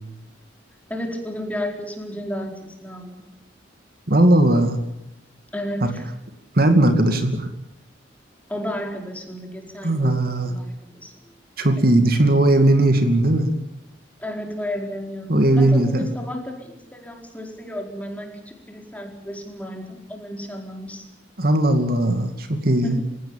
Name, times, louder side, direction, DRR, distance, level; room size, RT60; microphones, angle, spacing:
voice 1, 0.9-3.3 5.5-6.1 8.5-11.3 11.6-11.7 14.2-21.1 22.8-23.0, left 1 dB, 10° left, 2 dB, 4.6 m, -32 dB
voice 2, 4.1-4.8 5.8-5.9 6.5-7.5 9.8-10.5 11.6-13.5 15.3-16.1 21.4-23.0, right 1 dB, 50° right, 7 dB, 2.4 m, -18 dB
28.5 x 17.0 x 9.0 m, 0.84 s
head